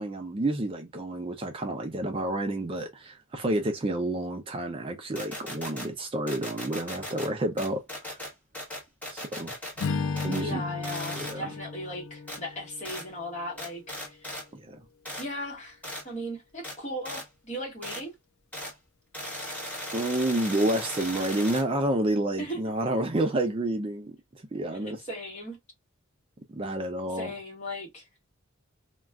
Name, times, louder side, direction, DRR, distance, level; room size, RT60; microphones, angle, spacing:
voice 1, 0.0-8.2 9.1-9.5 10.2-10.6 11.2-11.5 14.5-14.8 19.9-25.0 26.5-27.3, right 1 dB, 25° right, 0.4 m, -29 dB
sound 1, 5.1-5.9 6.3-7.3 7.6-9.9 10.2-10.5 10.8-11.4 12.3-12.4 12.8-13.1 13.6-14.4 15.0-15.3 15.8-16.0 16.6-16.8 17.0-17.3 17.8-18.0 18.5-18.7 19.1-21.6, left 1 dB, 5° left, 0.9 m, -37 dB
Strum, 9.8-14.2, left 4 dB, 70° left, 0.4 m, -35 dB
voice 2, 10.4-14.3 15.2-15.8 16.0-18.1 22.4-22.6 24.7-25.6 27.1-28.0, equal, 35° left, 1.1 m, -37 dB
2.3 x 2.2 x 3.4 m
head